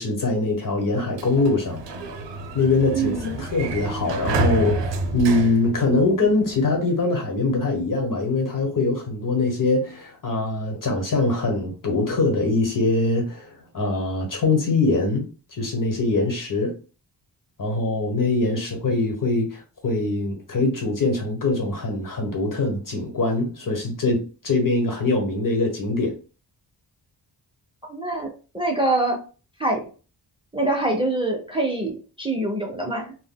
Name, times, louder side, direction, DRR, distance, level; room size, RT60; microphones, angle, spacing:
voice 1, 0.0-1.8 2.5-4.8 5.1-16.7 17.6-26.1, left 2 dB, 45° left, 1.1 m, -23 dB
Sliding door, 0.9-6.5, right 3 dB, 75° right, 0.6 m, -29 dB
voice 2, 2.9-3.4 27.9-28.3 28.5-29.2 29.6-29.8 30.5-33.2, right 2 dB, 10° right, 0.7 m, -24 dB
3.7 x 2.1 x 2.2 m
wide cardioid pair, 100°, 44 cm